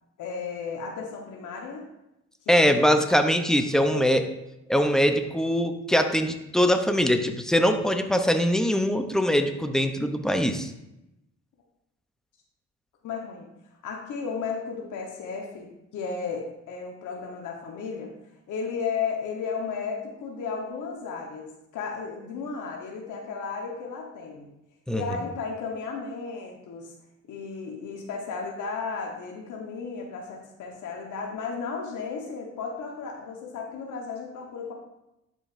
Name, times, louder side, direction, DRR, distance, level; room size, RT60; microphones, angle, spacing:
voice 1, 0.2-1.9 2.4-2.9 3.8-4.1 13.0-13.5 13.8-18.1 18.5-24.5 24.9-26.9 27.3-34.7, left 5 dB, 80° left, 0 dB, 1.3 m, -34 dB
voice 2, 2.5-4.2 4.7-10.7 24.9-25.0, equal, ahead, 6 dB, 0.7 m, -22 dB
11.0 x 5.2 x 2.6 m, 0.89 s
cardioid pair, 90°, 30 cm